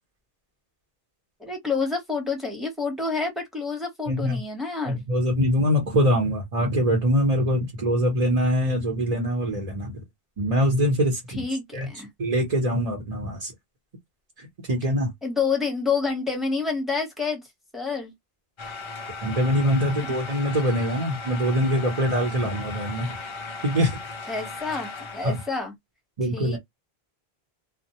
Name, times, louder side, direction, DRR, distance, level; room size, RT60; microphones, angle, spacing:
voice 1, 1.4-5.0 11.4-12.1 15.2-17.4 17.7-18.1 24.3-25.7 26.3-26.6, left 4 dB, ahead, 0.8 m, -28 dB
voice 2, 4.1-4.4 4.9-10.0 10.4-11.4 11.7-11.9 12.2-13.5 14.4-15.1 19.2-23.2 23.6-24.0 25.2-25.4 26.2-26.6, equal, 40° right, 0.9 m, -23 dB
sound 1, 18.6-25.6, left 4 dB, 50° left, 0.3 m, -37 dB
2.1 x 2.1 x 2.7 m
omnidirectional pair, 1.0 m